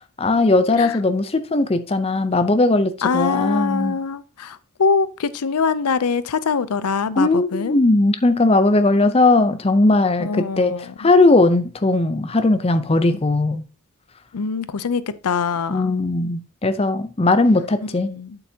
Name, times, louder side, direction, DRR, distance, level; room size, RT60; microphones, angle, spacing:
voice 1, 0.2-4.0 7.2-13.6 15.7-18.1, left 2 dB, 25° left, 0.6 m, -18 dB
voice 2, 3.0-7.8 10.2-11.1 14.3-16.0 18.0-18.4, left 5 dB, 90° left, 0.6 m, -23 dB
8.5 x 7.8 x 2.8 m
head